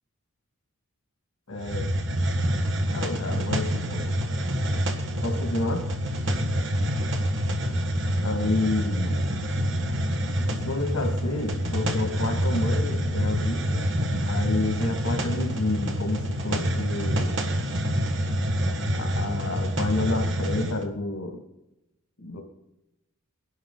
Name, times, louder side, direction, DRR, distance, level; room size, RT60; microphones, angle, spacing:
voice 1, 1.5-1.9 2.9-4.1 5.1-5.8 8.2-9.2 10.5-13.9 14.3-17.3 19.0-21.4 22.2-22.4, left 2 dB, 90° left, 3 dB, 2.2 m, -30 dB
Hiss, 1.6-20.8, equal, 55° right, 1.6 m, -27 dB
21.5 x 11.0 x 4.0 m, 0.90 s
head